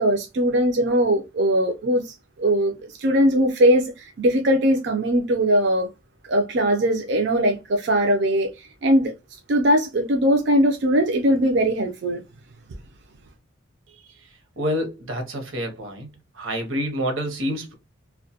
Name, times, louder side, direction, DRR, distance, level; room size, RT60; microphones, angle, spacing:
voice 1, 0.0-2.7 3.0-5.9 6.3-8.5 8.8-9.1 9.5-12.2, equal, 60° right, 0.4 m, -20 dB
voice 2, 14.6-16.1 16.3-17.7, equal, 80° right, 0.8 m, -28 dB
2.2 x 2.1 x 2.7 m
head